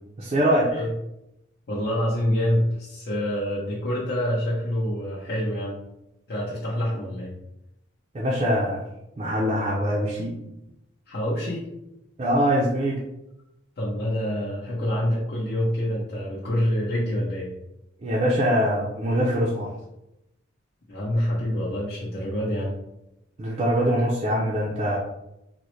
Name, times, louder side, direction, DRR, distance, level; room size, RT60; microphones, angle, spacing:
voice 1, 0.2-0.7 8.1-8.8 9.2-10.4 12.2-13.0 18.0-19.7 23.4-25.0, equal, 30° right, -4 dB, 0.4 m, -23 dB
voice 2, 1.7-5.8 6.3-7.4 11.1-11.7 13.8-17.5 20.9-22.7, equal, 50° left, -8 dB, 0.7 m, -26 dB
3.8 x 2.1 x 3.0 m, 0.88 s
head